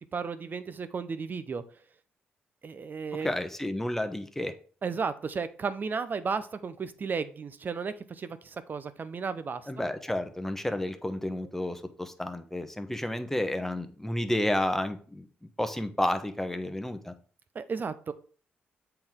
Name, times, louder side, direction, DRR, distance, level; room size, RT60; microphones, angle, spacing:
voice 1, 0.1-1.6 2.6-3.3 4.8-9.8 17.5-18.1, right 5 dB, 45° right, 12 dB, 0.7 m, -34 dB
voice 2, 3.2-4.5 9.7-15.3 15.6-17.1, left 1 dB, 10° left, 8 dB, 1.0 m, -31 dB
7.6 x 4.6 x 3.7 m, 0.42 s
supercardioid pair, 65°, 4 cm